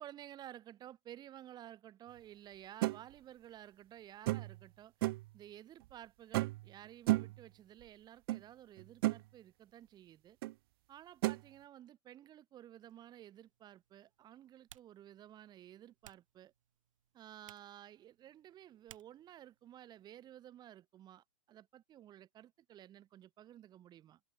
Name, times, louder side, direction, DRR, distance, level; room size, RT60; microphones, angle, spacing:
voice 1, 0.0-4.9 5.3-10.4 10.9-16.5 17.1-24.2, right 12 dB, 20° right, 3.4 m, -54 dB
sound 1, 2.8-3.0 4.3-4.6 5.0-5.3 6.3-6.7 7.1-7.4 8.3-8.4 8.8-9.2 10.4-10.5 11.2-11.4, right 19 dB, 40° right, 0.5 m, -33 dB
Typing, 12.9-20.4, right 12 dB, 60° right, 7.3 m, -65 dB
hypercardioid pair, 135°, 18 cm